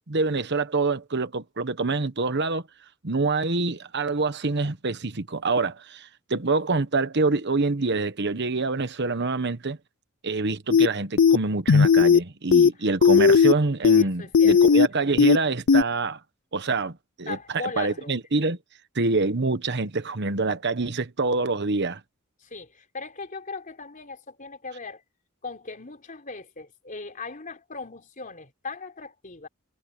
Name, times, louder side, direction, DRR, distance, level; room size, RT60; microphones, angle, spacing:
voice 1, 0.1-2.6 3.0-9.8 10.2-16.2 16.5-18.6 18.9-22.0, right 3 dB, 55° right, 1.2 m, -26 dB
sound 1, 10.7-10.9 11.2-11.4 11.7-12.2 12.5-12.7 13.0-13.5 13.8-14.0 14.3-14.9 15.2-15.4 15.7-15.8, left 6 dB, 65° left, 0.4 m, -16 dB
voice 2, 14.0-14.7 17.3-18.1 22.4-25.0 25.4-29.5, left 4 dB, 40° left, 3.8 m, -38 dB
head